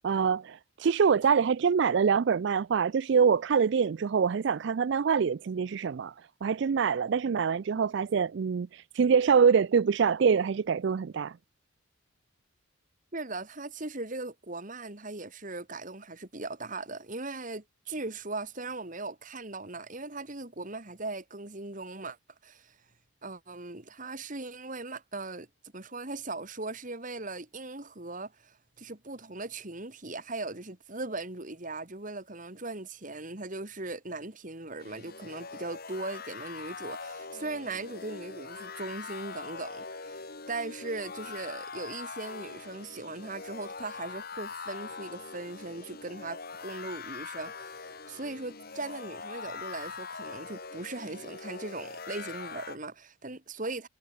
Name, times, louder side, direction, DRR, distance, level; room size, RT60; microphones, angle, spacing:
voice 1, 0.0-6.1 6.4-11.3, right 6 dB, 55° right, 0.4 m, -25 dB
voice 2, 13.1-22.2 22.4-22.8 23.2-25.5 25.7-47.8 48.1-53.9, right 2 dB, 40° right, 2.2 m, -39 dB
sound 1, 34.8-52.8, left 4 dB, 45° left, 2.0 m, -42 dB
head